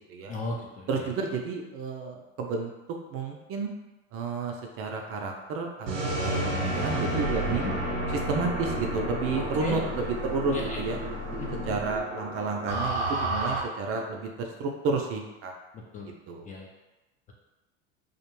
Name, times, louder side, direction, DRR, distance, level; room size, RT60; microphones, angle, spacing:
voice 1, 0.3-0.9 7.6-7.7 9.6-9.8 10.5-10.8 11.3-11.8 15.9-16.1 16.5-16.7, left 3 dB, 25° left, -2 dB, 0.4 m, -35 dB
voice 2, 0.9-2.7 3.1-3.7 4.1-5.9 6.2-7.6 8.1-11.0 11.6-15.5 16.3-16.5, right 4 dB, 40° right, 2 dB, 0.4 m, -31 dB
sound 1, 5.9-13.6, right 1 dB, 85° right, 0.8 m, -30 dB
2.4 x 2.1 x 3.0 m, 1.1 s
hypercardioid pair, 90°, 36 cm